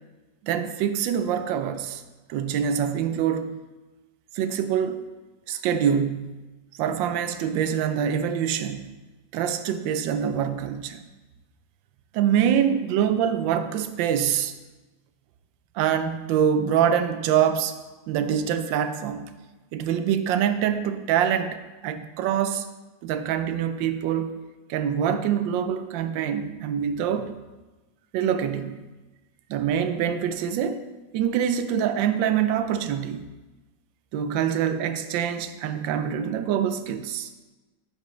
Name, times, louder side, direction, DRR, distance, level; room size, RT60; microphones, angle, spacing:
voice 1, 0.4-2.0 2.3-3.5 4.3-5.0 5.5-6.4 6.8-8.9 9.3-11.0 12.1-14.5 15.7-17.7 18.1-19.3 19.7-22.6 23.0-24.3 24.7-27.3 28.1-28.8 29.5-30.8 31.1-33.3 34.1-37.3, right 8 dB, 85° right, 10 dB, 1.3 m, -25 dB
10.0 x 5.2 x 3.2 m, 1.2 s
omnidirectional pair, 2.0 m